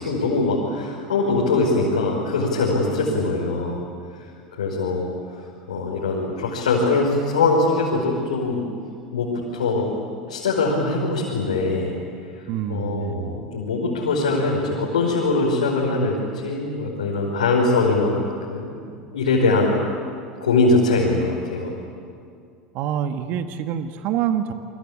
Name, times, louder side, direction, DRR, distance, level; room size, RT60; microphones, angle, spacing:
voice 1, 0.0-3.8 4.6-5.1 5.7-8.7 9.1-9.9 10.3-11.9 12.7-18.7 19.1-19.9 20.4-21.7, left 3 dB, 85° left, -4 dB, 5.1 m, -22 dB
voice 2, 3.0-3.4 12.5-13.4 22.7-24.5, right 9 dB, 55° right, 8 dB, 1.7 m, -27 dB
28.5 x 23.5 x 8.7 m, 2.4 s
hypercardioid pair, 85°, 4 cm